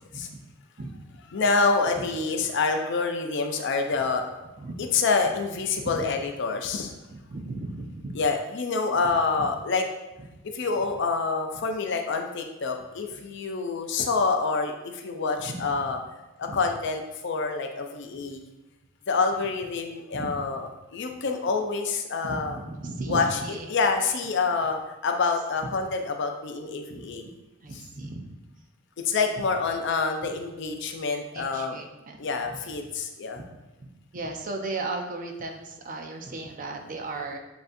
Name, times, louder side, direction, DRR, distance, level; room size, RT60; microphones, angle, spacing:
voice 1, 1.3-4.3 4.9-6.9 8.1-9.8 10.5-16.0 16.4-18.4 19.1-20.6 20.9-22.6 23.1-23.4 23.7-27.3 29.0-31.8 32.2-33.4, left 4 dB, 60° left, 4 dB, 0.5 m, -27 dB
voice 2, 5.8-6.1 7.1-8.1 9.4-9.5 15.5-15.7 16.5-16.6 20.1-20.5 22.2-23.7 26.9-27.1 27.6-28.3 31.3-32.6 33.4-33.5 33.8-33.9 34.1-37.4, right 2 dB, 40° right, 3 dB, 0.5 m, -36 dB
7.7 x 2.7 x 2.6 m, 1.0 s
head